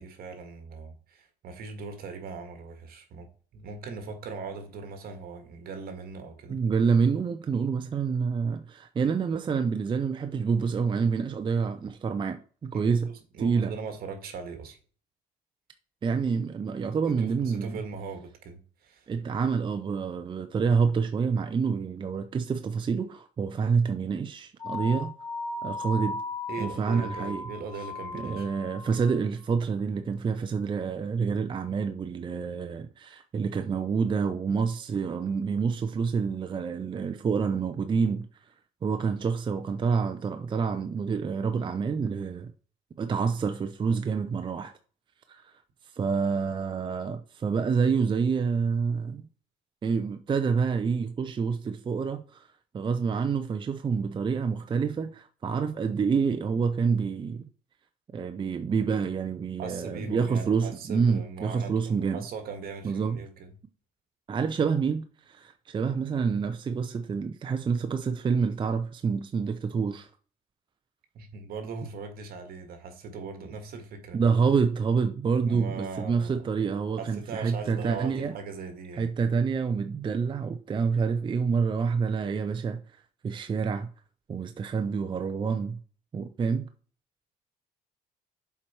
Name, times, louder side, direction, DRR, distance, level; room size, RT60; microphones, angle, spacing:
voice 1, 0.0-3.3 3.5-6.6 12.7-14.8 17.1-19.1 26.5-28.5 59.6-63.6 71.1-74.2 75.4-76.4 77.0-79.1, right 4 dB, 65° right, 1.8 m, -40 dB
voice 2, 6.5-13.1 13.4-13.7 16.0-17.8 19.1-25.1 25.6-26.2 26.6-27.4 28.2-38.3 38.8-42.5 43.0-44.7 45.3-45.5 45.9-49.3 49.8-52.5 52.7-57.4 58.1-62.2 62.8-63.2 64.3-70.1 74.1-78.3 78.9-82.8 83.2-83.9 84.3-85.8 86.1-86.7, right 5 dB, 30° right, 0.6 m, -27 dB
sound 1, 24.6-29.2, left 3 dB, 20° left, 0.7 m, -36 dB
7.3 x 4.7 x 4.4 m
cardioid pair, 110°, 17 cm